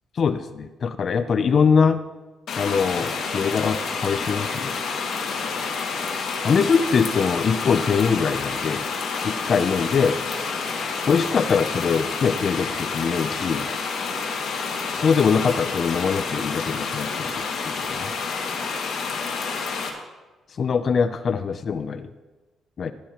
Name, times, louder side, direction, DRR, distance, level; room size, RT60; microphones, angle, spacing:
voice 1, 0.2-2.0 2.6-4.7 6.4-8.8 9.2-10.2 11.1-13.7 14.9-18.1 20.6-22.1 22.8-22.9, left 6 dB, 50° left, 11 dB, 0.6 m, -22 dB
sound 1, 2.5-19.9, left 5 dB, 70° left, 2.1 m, -29 dB
16.0 x 12.0 x 3.0 m, 1.2 s
cardioid pair, 90°, 0 cm